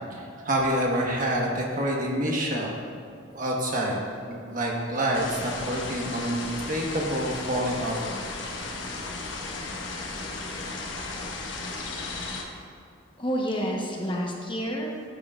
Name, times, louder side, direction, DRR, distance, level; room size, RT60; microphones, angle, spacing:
voice 1, 0.1-2.7 3.3-8.1, right 1 dB, 45° right, -2 dB, 1.3 m, -27 dB
sound 1, 5.1-12.4, left 3 dB, 75° left, 1.0 m, -35 dB
voice 2, 13.2-15.1, equal, 25° left, 0 dB, 0.9 m, -29 dB
13.0 x 7.5 x 2.4 m, 2.4 s
head